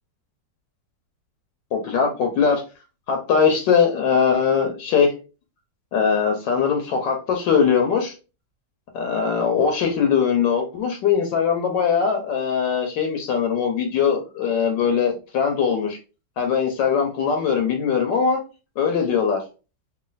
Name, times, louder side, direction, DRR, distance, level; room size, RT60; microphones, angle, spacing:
voice 1, 1.7-2.6 3.1-5.1 5.9-8.1 8.9-16.0 16.4-18.4 18.8-19.4, left 6 dB, 75° left, 3 dB, 1.3 m, -21 dB
3.1 x 2.6 x 3.8 m, 0.32 s
omnidirectional pair, 2.0 m